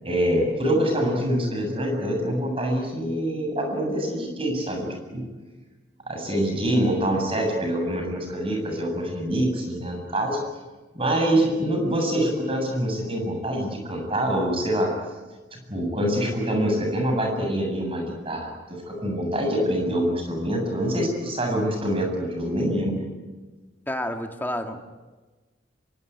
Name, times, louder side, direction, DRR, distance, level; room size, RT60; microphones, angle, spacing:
voice 1, 0.0-5.2 6.1-10.4 10.9-14.9 15.5-23.0, right 1 dB, 30° right, 2 dB, 7.6 m, -25 dB
voice 2, 23.9-24.8, left 1 dB, 10° left, 4 dB, 2.1 m, -29 dB
26.0 x 24.0 x 9.7 m, 1.3 s
head